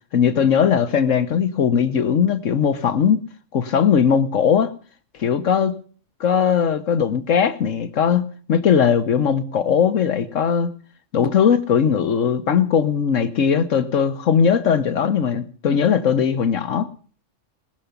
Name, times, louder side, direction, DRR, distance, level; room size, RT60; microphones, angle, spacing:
voice 1, 0.1-3.2 3.5-4.7 5.2-5.7 6.2-10.7 11.1-16.9, left 7 dB, 80° left, 1.4 m, -19 dB
20.0 x 7.0 x 9.6 m
omnidirectional pair, 1.3 m